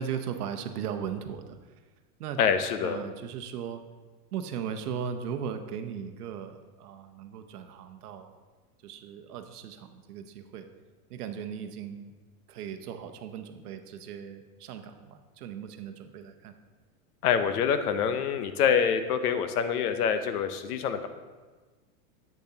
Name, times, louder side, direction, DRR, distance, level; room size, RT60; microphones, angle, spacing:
voice 1, 0.0-1.8 2.2-3.8 4.3-8.4 8.8-10.6 11.1-12.1 12.5-16.5, right 7 dB, 85° right, 7 dB, 0.8 m, -37 dB
voice 2, 2.4-3.0 17.2-21.1, left 7 dB, 80° left, 9 dB, 0.8 m, -26 dB
8.4 x 6.7 x 2.8 m, 1.3 s
hypercardioid pair, 125°, 45 cm